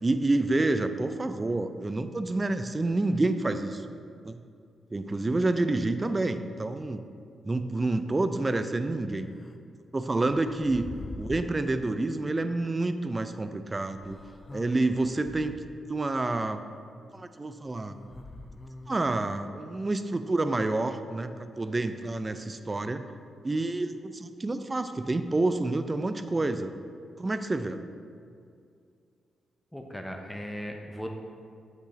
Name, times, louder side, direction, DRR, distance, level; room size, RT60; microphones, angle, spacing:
voice 1, 0.0-3.9 4.2-4.4 4.9-7.0 7.4-9.3 9.9-10.9 11.2-14.2 14.5-15.6 15.9-16.7 17.1-18.0 18.9-23.1 23.4-26.7 27.2-27.8, right 2 dB, 30° right, 10 dB, 0.4 m, -28 dB
sound 1, 9.3-9.5 10.3-11.6 12.8-12.9 14.0-15.8 17.9-19.3, left 2 dB, 35° left, 0.5 m, -44 dB
voice 2, 29.7-31.1, equal, 10° left, 2 dB, 0.9 m, -37 dB
8.0 x 6.2 x 3.2 m, 2.3 s
hypercardioid pair, 40°, 0 cm